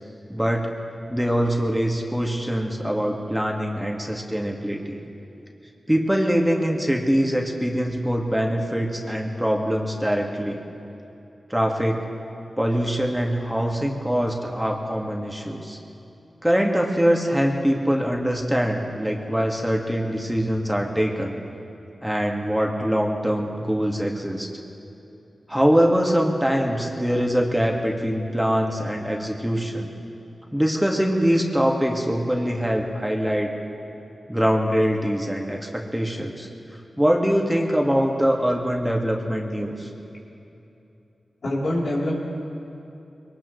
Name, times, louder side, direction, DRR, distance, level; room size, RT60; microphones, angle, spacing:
voice 1, 0.3-0.7 1.1-5.0 5.9-10.6 11.5-12.0 12.6-15.8 16.4-21.4 22.0-24.5 25.5-29.9 30.5-33.5 34.3-36.5 37.0-39.9, equal, 5° right, 0 dB, 1.8 m, -23 dB
voice 2, 41.4-42.1, left 1 dB, 80° left, -6 dB, 3.5 m, -24 dB
22.0 x 19.0 x 3.2 m, 2.8 s
cardioid pair, 45°, 0 cm